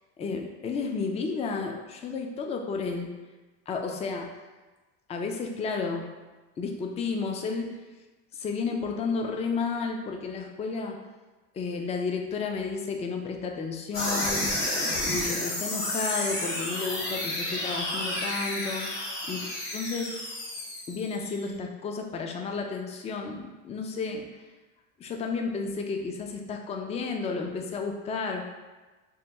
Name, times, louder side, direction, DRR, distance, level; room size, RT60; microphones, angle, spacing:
voice 1, 0.2-3.2 3.7-4.4 5.1-6.1 6.6-7.7 8.3-11.0 11.5-14.4 15.1-18.9 19.3-19.5 19.7-20.1 20.9-24.3 25.0-28.4, left 4 dB, 20° left, 3 dB, 0.3 m, -32 dB
sound 1, 13.9-21.4, left 1 dB, 85° left, 1.2 m, -31 dB
2.9 x 2.2 x 3.3 m, 1.2 s
supercardioid pair, 90°, 38 cm